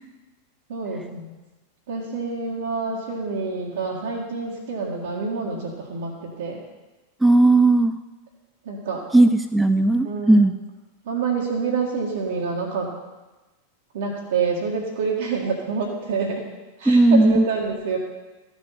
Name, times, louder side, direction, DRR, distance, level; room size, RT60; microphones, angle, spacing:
voice 1, 0.7-1.3 1.9-6.6 8.7-9.0 10.0-10.4 11.1-12.9 13.9-16.4 16.8-18.0, right 5 dB, 60° right, -5 dB, 1.9 m, -27 dB
voice 2, 7.2-7.9 9.1-10.5 16.9-17.4, right 2 dB, 5° right, 10 dB, 0.4 m, -16 dB
14.5 x 6.3 x 5.9 m, 1.1 s
figure-of-eight pair, 90°, 0 cm